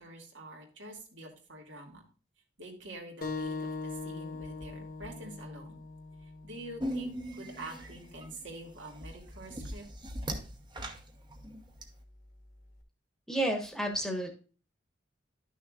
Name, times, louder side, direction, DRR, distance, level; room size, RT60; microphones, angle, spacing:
voice 1, 0.0-2.0 2.6-5.8 6.2-9.8, right 1 dB, 80° right, 1 dB, 2.3 m, -46 dB
sound 1, 3.2-8.3, left 3 dB, 50° left, 1.3 m, -41 dB
sound 2, 6.8-11.8, equal, 25° right, 1.0 m, -40 dB
voice 2, 13.3-14.3, right 1 dB, ahead, 3 dB, 1.3 m, -31 dB
11.5 x 6.3 x 2.4 m, 0.37 s
head